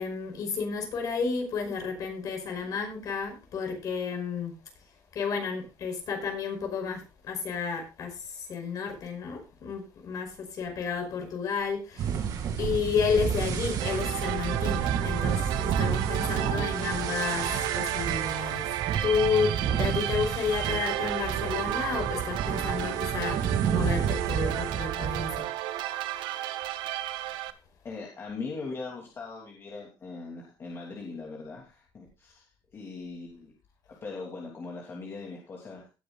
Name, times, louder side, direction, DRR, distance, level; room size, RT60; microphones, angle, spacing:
voice 1, 0.0-4.6 5.1-12.2 12.6-18.7 19.0-25.5, left 5 dB, 50° left, 4 dB, 5.3 m, -31 dB
sound 1, 12.0-25.4, right 8 dB, 55° right, 2.4 m, -31 dB
sound 2, 13.8-27.5, right 14 dB, 80° right, 1.0 m, -33 dB
voice 2, 16.3-16.8 27.8-32.4 32.7-33.5 34.0-35.9, left 3 dB, 30° left, -2 dB, 3.0 m, -40 dB
18.0 x 10.0 x 2.4 m, 0.29 s
cardioid pair, 140°, 8 cm